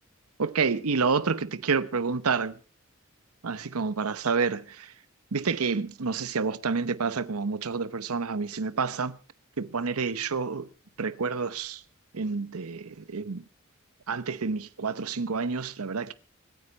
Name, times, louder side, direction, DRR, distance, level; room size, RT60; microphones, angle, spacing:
voice 1, 0.4-2.6 3.4-4.9 5.3-9.2 9.6-10.7 11.0-11.8 12.1-13.4 14.1-16.1, right 5 dB, 85° right, 0.8 m, -29 dB
25.5 x 9.8 x 4.2 m
head